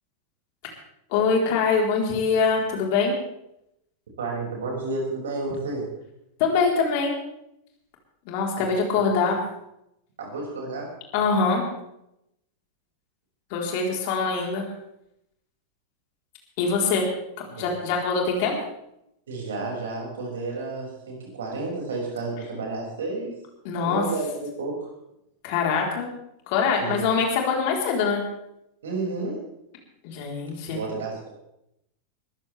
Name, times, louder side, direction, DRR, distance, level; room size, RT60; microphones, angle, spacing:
voice 1, 1.1-3.2 6.4-7.2 8.3-9.4 11.1-11.6 13.5-14.7 16.6-17.1 17.6-18.6 23.6-24.0 25.4-26.1 26.5-28.2 30.0-30.8, left 5 dB, 45° left, 0 dB, 4.2 m, -23 dB
voice 2, 4.2-5.9 8.6-8.7 10.2-10.9 14.0-14.1 17.5-17.8 19.3-23.3 23.8-24.9 26.8-27.0 28.8-29.4 30.7-31.3, right 3 dB, 65° right, -1 dB, 6.4 m, -31 dB
21.5 x 14.5 x 3.5 m, 0.80 s
figure-of-eight pair, 90°, 0 cm